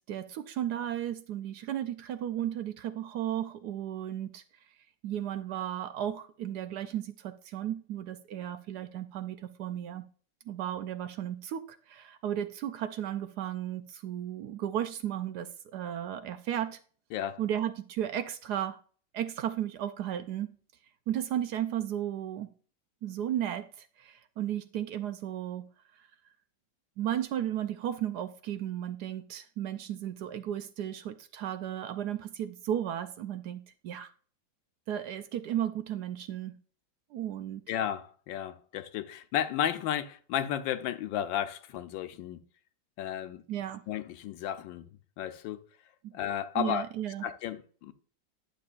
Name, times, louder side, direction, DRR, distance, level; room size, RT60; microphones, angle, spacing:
voice 1, 0.1-4.4 5.0-10.0 10.5-16.8 17.4-18.8 19.1-20.5 21.1-22.5 23.0-25.7 26.0-26.1 27.0-34.1 34.9-36.6 37.1-37.6 43.5-43.8 46.0-46.1 46.5-47.3, right 11 dB, 70° right, 1.0 m, -34 dB
voice 2, 37.7-42.4 43.0-43.4 43.9-44.9 45.2-45.6 46.1-46.8 47.2-47.9, left 10 dB, 85° left, 1.4 m, -33 dB
10.0 x 7.0 x 2.4 m
omnidirectional pair, 2.0 m